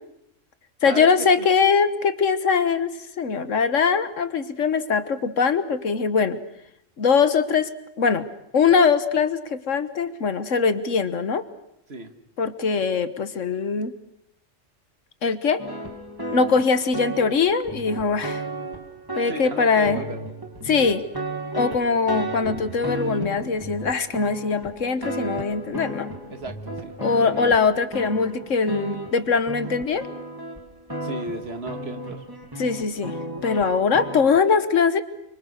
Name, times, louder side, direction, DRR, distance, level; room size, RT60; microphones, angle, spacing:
voice 1, 0.8-6.4 7.0-7.7 8.0-8.3 8.5-11.4 12.4-13.9 15.2-15.6 16.3-18.4 19.1-20.0 20.6-21.0 21.5-26.1 27.0-30.1 32.6-33.2 33.4-35.0, left 5 dB, 75° left, 12 dB, 1.7 m, -22 dB
sound 1, 15.6-34.4, right 1 dB, 15° right, 2.7 m, -34 dB
voice 2, 19.3-20.2 26.3-27.4 31.0-32.2, right 3 dB, 55° right, 8 dB, 2.1 m, -35 dB
28.0 x 25.0 x 6.6 m, 0.78 s
omnidirectional pair, 1.3 m